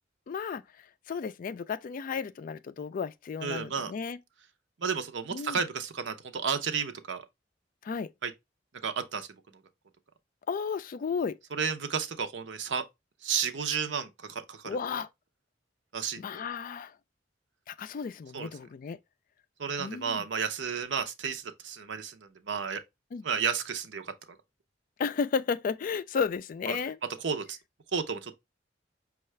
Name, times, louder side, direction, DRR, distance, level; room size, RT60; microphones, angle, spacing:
voice 1, 0.3-4.2 5.3-5.6 7.8-8.1 10.5-11.4 14.6-15.1 16.2-17.0 17.7-19.0 19.8-20.2 23.1-23.2 25.0-27.0, left 5 dB, 50° left, 0.3 m, -33 dB
voice 2, 3.4-3.9 4.8-7.2 8.2-8.3 8.8-9.3 11.6-12.8 13.2-14.8 15.9-16.4 18.3-18.5 19.6-22.2 22.5-22.8 23.2-24.1 26.7-26.8 27.2-27.6 27.9-28.4, right 6 dB, 80° right, 0.6 m, -32 dB
5.5 x 2.4 x 3.1 m
head